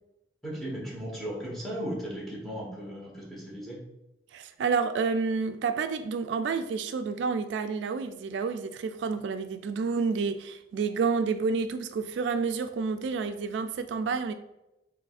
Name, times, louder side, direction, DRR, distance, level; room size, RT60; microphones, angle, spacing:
voice 1, 0.4-3.8, equal, ahead, -5 dB, 1.1 m, -36 dB
voice 2, 4.3-14.3, right 5 dB, 75° right, 8 dB, 0.3 m, -29 dB
4.8 x 3.4 x 2.4 m, 0.89 s
head